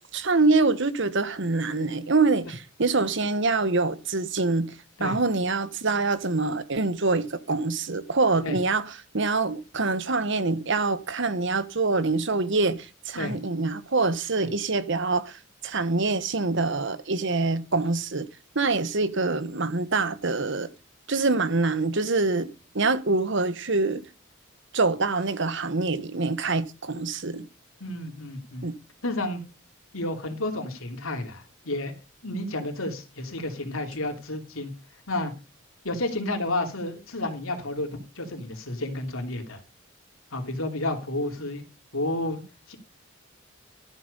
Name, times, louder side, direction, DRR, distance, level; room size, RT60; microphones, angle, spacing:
voice 1, 0.1-4.7 5.0-8.8 9.1-18.2 18.5-20.7 21.1-22.5 22.7-24.0 24.7-27.5 28.6-28.7, right 3 dB, 60° right, 1.2 m, -25 dB
voice 2, 27.8-28.7 29.0-29.4 29.9-31.9 32.2-34.7 35.1-35.3 35.8-39.6 40.3-41.6 41.9-42.4 42.7-42.8, left 1 dB, 85° left, 3.1 m, -31 dB
13.5 x 7.7 x 5.4 m
head